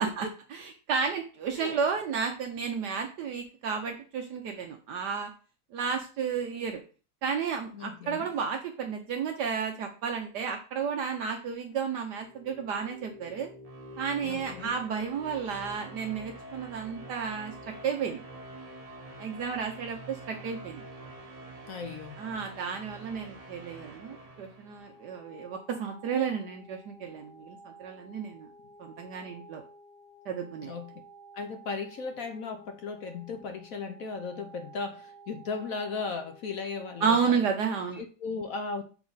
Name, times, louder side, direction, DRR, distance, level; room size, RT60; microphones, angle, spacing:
voice 1, 0.0-5.3 5.7-6.8 7.2-13.5 14.0-18.2 19.2-20.8 22.2-28.5 28.8-29.6 30.3-30.7 37.0-38.0, right 6 dB, 70° right, 4 dB, 1.3 m, -32 dB
voice 2, 7.7-8.3 14.2-14.7 21.7-22.2 30.6-30.9 31.3-37.4 37.9-38.8, left 4 dB, 60° left, 6 dB, 1.0 m, -36 dB
sound 1, 12.1-25.2, right 1 dB, 40° right, 0.5 m, -47 dB
sound 2, 24.8-37.1, right 1 dB, 40° left, 2.0 m, -53 dB
7.3 x 3.6 x 4.0 m, 0.36 s
omnidirectional pair, 2.0 m